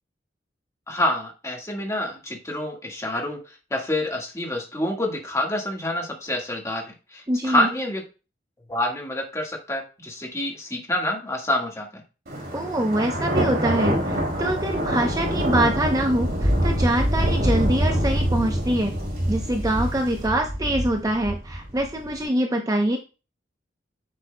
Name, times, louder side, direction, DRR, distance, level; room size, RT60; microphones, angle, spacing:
voice 1, 0.9-8.0 8.7-12.0, left 1 dB, 15° left, 1 dB, 1.6 m, -27 dB
voice 2, 7.3-7.7 12.5-18.9 19.3-23.0, right 1 dB, 20° right, 3 dB, 0.7 m, -24 dB
Thunder, 12.3-22.1, equal, 55° right, 2.6 m, -25 dB
9.7 x 7.3 x 2.2 m, 0.32 s
head